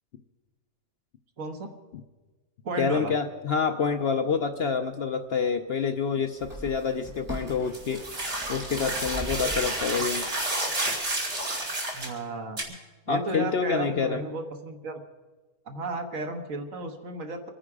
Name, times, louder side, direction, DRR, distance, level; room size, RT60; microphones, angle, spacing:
voice 1, 1.4-1.7 2.6-3.1 11.9-12.6 13.1-15.0 15.6-17.5, right 2 dB, 65° right, 5 dB, 1.6 m, -34 dB
voice 2, 2.8-8.0 8.5-10.3 13.1-14.2, left 5 dB, 55° left, 7 dB, 0.8 m, -27 dB
sound 1, 4.5-4.6 6.3-10.3 10.9-11.0, right 1 dB, 5° right, 4.3 m, -40 dB
sound 2, 7.7-12.1 12.6-12.7, right 1 dB, 40° right, 2.7 m, -30 dB
25.5 x 10.0 x 4.8 m, 1.3 s
omnidirectional pair, 1.5 m